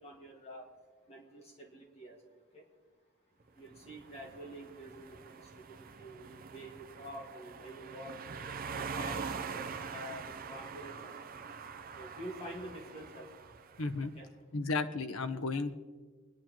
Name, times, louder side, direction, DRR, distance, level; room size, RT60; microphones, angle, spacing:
voice 1, 0.0-0.7 1.1-2.2 2.5-2.6 3.6-5.4 5.7-8.2 8.7-9.6 9.9-11.2 12.0-13.2 14.2-14.3, equal, 30° left, 0 dB, 1.8 m, -47 dB
sound 1, 3.7-14.0, right 5 dB, 45° right, 0.7 m, -44 dB
voice 2, 13.8-14.1 14.5-15.7, left 3 dB, 90° left, 9 dB, 0.9 m, -33 dB
23.5 x 10.5 x 3.0 m, 1.4 s
head